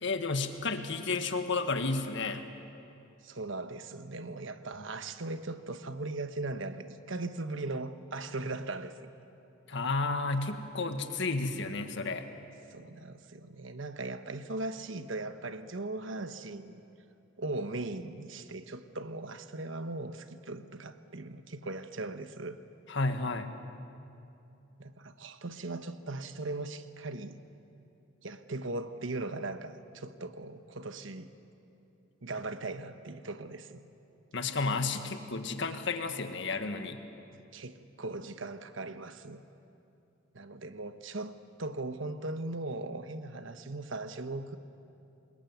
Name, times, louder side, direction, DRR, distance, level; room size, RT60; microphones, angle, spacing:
voice 1, 0.0-2.4 9.7-12.2 22.9-23.5 34.3-37.0, left 3 dB, 60° left, 8 dB, 1.6 m, -32 dB
voice 2, 3.2-9.1 12.7-16.8 17.4-22.6 24.8-27.4 28.2-31.3 32.2-33.8 37.5-39.4 40.3-41.3 41.6-44.6, right 2 dB, 65° right, 10 dB, 1.2 m, -39 dB
25.5 x 21.5 x 9.3 m, 2.8 s
head